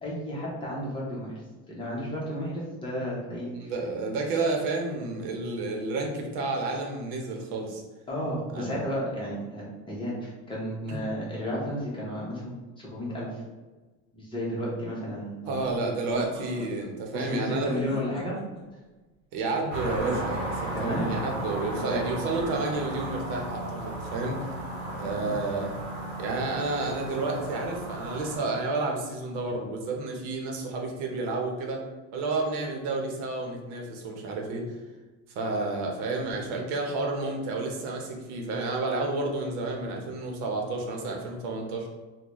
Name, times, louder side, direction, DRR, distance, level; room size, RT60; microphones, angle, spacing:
voice 1, 0.0-1.3 1.7-3.7 8.1-13.4 14.1-15.6 17.1-18.4 20.7-21.1 21.7-22.1 24.9-25.3, equal, 15° left, -5 dB, 0.8 m, -33 dB
voice 2, 3.5-7.8 8.5-8.8 10.9-11.1 15.5-17.7 19.3-24.5 25.0-25.8 26.2-31.8 32.1-34.8 35.3-41.9, right 3 dB, 75° right, 1 dB, 0.8 m, -30 dB
sound 1, 15.5-16.9 17.5-18.6 19.9-20.8 22.3-23.1, right 1 dB, 20° right, 1.0 m, -42 dB
sound 2, 19.7-28.4, right 1 dB, 40° right, 1.5 m, -35 dB
3.8 x 2.2 x 2.9 m, 1.2 s
cardioid pair, 160°, 31 cm